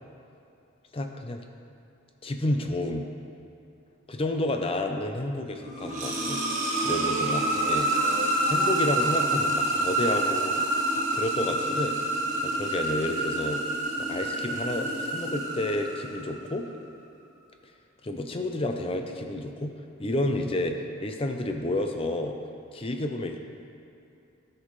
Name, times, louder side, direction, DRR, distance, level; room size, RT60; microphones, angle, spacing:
voice 1, 0.9-1.4 2.2-3.1 4.1-6.4 6.8-8.1 8.5-10.6 11.1-12.0 12.4-13.6 14.0-16.7 18.0-19.7 20.0-22.4 22.7-23.4, left 1 dB, 25° left, 4 dB, 0.5 m, -30 dB
sound 1, 5.5-16.3, right 1 dB, 35° right, 1.3 m, -27 dB
13.0 x 5.5 x 3.2 m, 2.6 s
head